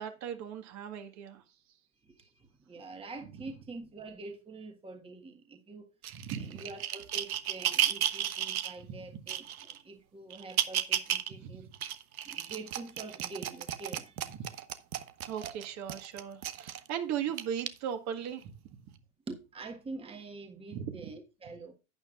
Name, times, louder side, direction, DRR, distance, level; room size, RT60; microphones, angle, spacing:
voice 1, 0.0-1.4 6.1-6.5 8.9-9.0 11.4-11.7 14.3-14.4 15.2-18.5 20.7-21.0, right 9 dB, 40° right, 1.7 m, -37 dB
voice 2, 2.7-5.9 6.4-11.7 12.2-14.2 19.3-21.7, right 3 dB, 15° right, 1.5 m, -45 dB
sound 1, 6.0-8.7 9.3-9.8 10.3-11.3 11.7-16.9 17.4-17.7 18.4-18.5, right 10 dB, 80° right, 1.1 m, -33 dB
11.5 x 9.2 x 2.5 m
hypercardioid pair, 105°, 42 cm